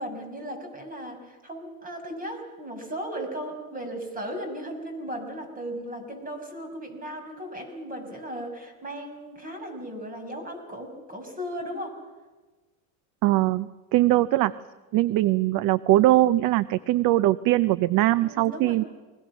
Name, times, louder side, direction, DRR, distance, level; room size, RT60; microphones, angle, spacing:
voice 1, 0.0-12.0 18.2-18.8, equal, 20° right, 5 dB, 6.3 m, -36 dB
voice 2, 13.2-14.5 14.9-18.8, right 15 dB, 50° right, 17 dB, 0.7 m, -21 dB
29.0 x 21.5 x 6.2 m, 1.3 s
supercardioid pair, 105°, 44 cm